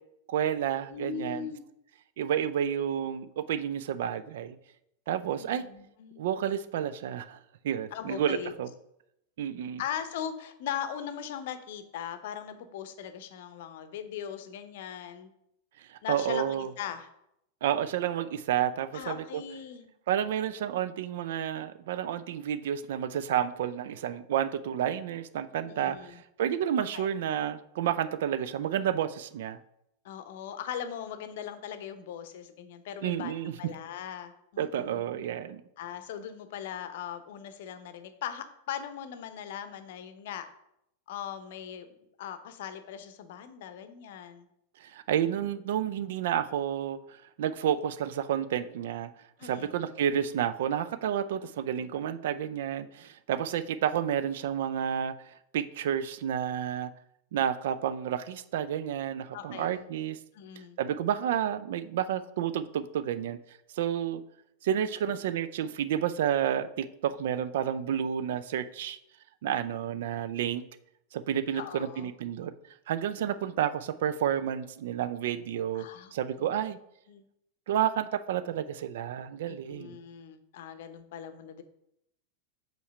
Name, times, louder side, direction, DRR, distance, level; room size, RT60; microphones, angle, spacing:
voice 1, 0.3-1.5 2.2-4.6 5.1-5.7 6.2-7.4 7.6-8.7 9.4-9.8 15.8-16.7 17.6-19.4 20.1-29.6 33.0-33.6 34.6-35.6 44.8-49.1 49.4-55.1 55.5-56.9 57.3-60.2 60.8-63.4 63.7-64.2 64.6-69.0 69.4-70.6 71.1-72.5 72.9-75.9 76.1-76.8 77.7-79.9, right 9 dB, 55° right, 13 dB, 0.4 m, -30 dB
voice 2, 0.9-1.6 5.4-6.2 7.9-8.5 9.8-15.3 16.0-17.1 18.9-19.9 25.6-26.2 26.9-27.1 30.0-35.3 35.8-40.5 41.1-41.9 42.2-44.5 49.4-49.8 59.3-59.9 60.3-60.8 71.5-72.1 75.7-76.1 76.4-76.5 77.1-77.2 79.5-81.6, left 9 dB, 55° left, 11 dB, 0.7 m, -39 dB
5.5 x 4.4 x 5.5 m, 0.79 s
figure-of-eight pair, 90°, 0 cm